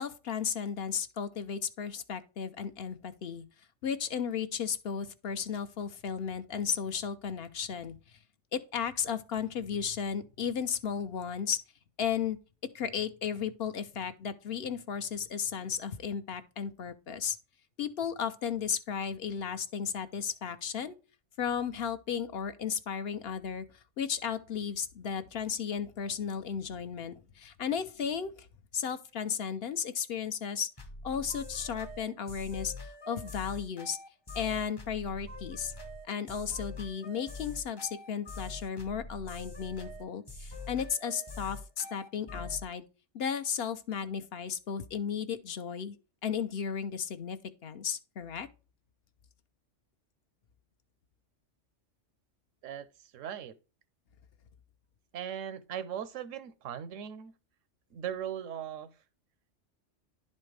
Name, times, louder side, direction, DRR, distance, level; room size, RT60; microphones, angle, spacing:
voice 1, 0.0-3.4 3.8-8.2 8.5-11.6 12.0-12.4 12.7-17.4 17.8-20.9 21.4-23.7 24.0-28.5 28.7-30.7 31.0-34.0 34.3-35.7 36.1-42.8 43.1-46.0 46.2-48.5, left 7 dB, 60° left, 0.8 m, -34 dB
sound 1, 30.8-42.6, left 2 dB, 25° left, 0.6 m, -44 dB
voice 2, 53.1-53.5 55.1-57.3 57.9-58.9, right 9 dB, 90° right, 1.1 m, -38 dB
11.0 x 4.3 x 3.2 m
omnidirectional pair, 1.3 m